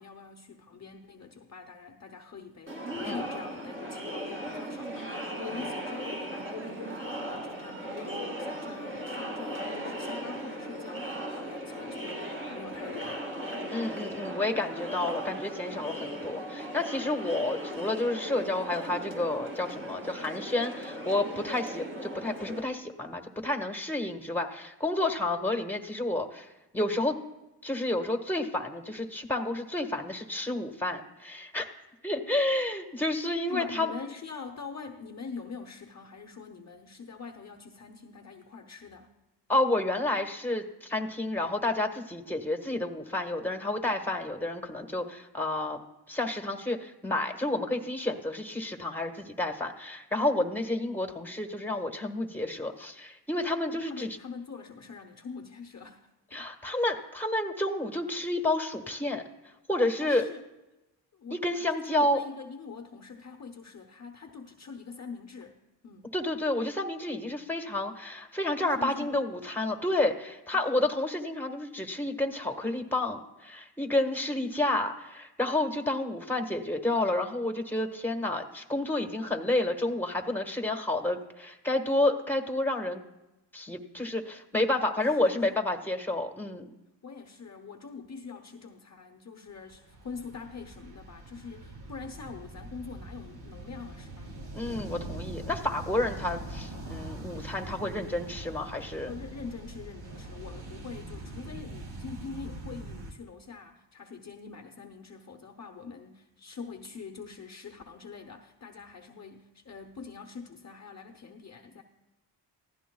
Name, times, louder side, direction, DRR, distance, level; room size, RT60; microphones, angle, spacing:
voice 1, 0.0-13.8 33.5-39.1 50.3-50.6 53.7-56.5 60.0-60.4 61.1-65.6 65.8-66.1 68.8-69.2 70.5-70.6 79.0-79.2 85.2-85.6 87.0-94.4 99.1-111.8, left 5 dB, 40° left, 4 dB, 0.8 m, -44 dB
Crowd, 2.7-22.6, equal, 30° right, 2.5 m, -37 dB
voice 2, 13.7-27.1 27.6-31.6 32.0-33.9 39.5-45.8 46.1-54.2 56.3-59.2 59.7-60.3 61.3-62.2 66.1-83.0 83.5-86.7 94.5-99.1, left 2 dB, 5° left, 4 dB, 1.4 m, -30 dB
sound 1, 89.6-103.1, right 2 dB, 70° right, 2.2 m, -42 dB
23.5 x 15.5 x 2.3 m, 0.98 s
cardioid pair, 90°, 41 cm